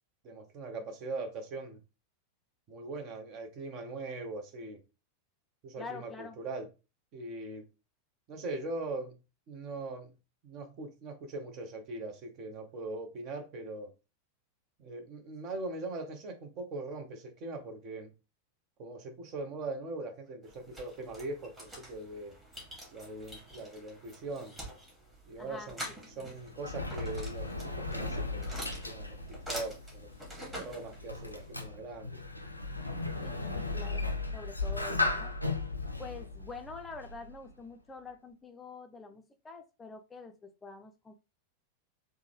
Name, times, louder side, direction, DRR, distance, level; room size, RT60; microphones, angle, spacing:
voice 1, 0.2-1.8 2.7-4.8 5.6-6.7 7.1-7.7 8.3-9.2 9.5-10.1 10.4-13.9 14.8-18.1 18.8-22.4 22.9-24.5 25.3-29.2 29.5-30.1 30.6-32.2, right 2 dB, 40° right, 0.8 m, -41 dB
voice 2, 5.8-6.4 25.4-26.3 33.2-35.3 36.0-41.1, left 4 dB, 15° left, 0.5 m, -46 dB
sound 1, 20.4-31.5, equal, 10° right, 1.5 m, -46 dB
Sliding door, 26.1-37.5, left 3 dB, 85° left, 0.4 m, -36 dB
3.5 x 2.2 x 3.1 m
figure-of-eight pair, 90°, 0 cm